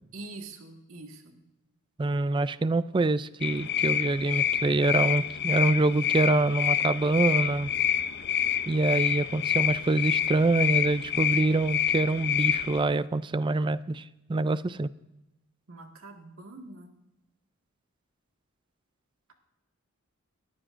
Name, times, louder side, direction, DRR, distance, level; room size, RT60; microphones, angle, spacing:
voice 1, 0.1-1.4 15.7-17.0, right 2 dB, 70° right, 3 dB, 1.8 m, -44 dB
voice 2, 2.0-7.7 8.7-14.0 14.3-14.9, right 2 dB, 20° right, 16 dB, 0.3 m, -25 dB
sound 1, 3.4-12.8, left 10 dB, 50° left, 0.6 m, -27 dB
21.0 x 14.0 x 2.6 m, 0.98 s
head